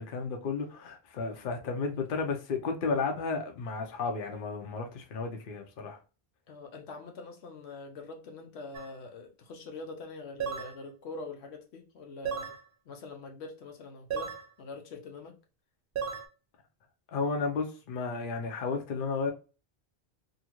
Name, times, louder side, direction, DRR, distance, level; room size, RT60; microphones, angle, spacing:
voice 1, 0.0-6.0 17.1-19.3, left 4 dB, 60° left, 0.8 m, -33 dB
voice 2, 6.5-12.5 12.9-14.3 14.6-15.3, left 3 dB, 85° left, 0.9 m, -44 dB
sound 1, 8.7-8.9 10.4-10.8 12.2-12.6 14.1-14.5 16.0-16.3, right 6 dB, 60° right, 0.7 m, -34 dB
2.8 x 2.5 x 2.9 m
omnidirectional pair, 1.1 m